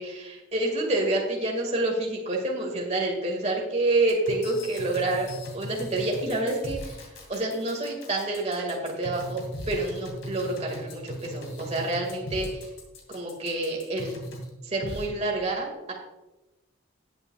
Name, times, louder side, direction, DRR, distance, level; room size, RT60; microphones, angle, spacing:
voice 1, 0.0-5.3 5.5-6.9 7.3-9.4 9.7-12.7 13.1-14.1 14.6-15.9, right 2 dB, 30° right, 0 dB, 2.0 m, -28 dB
sound 1, 4.1-14.5 14.8-15.0, equal, 65° left, 2.6 m, -39 dB
17.5 x 8.0 x 2.4 m, 1.1 s
head